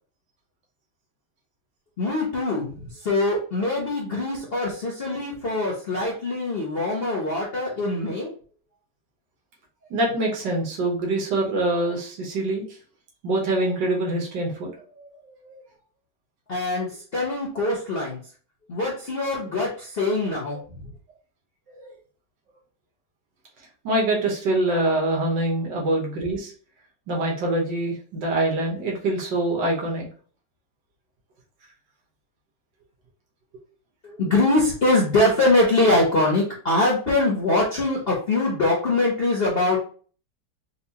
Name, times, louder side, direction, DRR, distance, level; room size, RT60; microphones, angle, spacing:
voice 1, 2.0-8.3 16.5-18.2 18.7-20.9 34.0-39.8, left 2 dB, 45° left, -3 dB, 0.8 m, -23 dB
voice 2, 9.9-12.6 13.2-15.6 21.8-21.9 23.8-26.5 27.1-30.1, right 2 dB, 85° right, -1 dB, 1.8 m, -25 dB
4.2 x 2.4 x 2.7 m, 0.42 s
omnidirectional pair, 1.9 m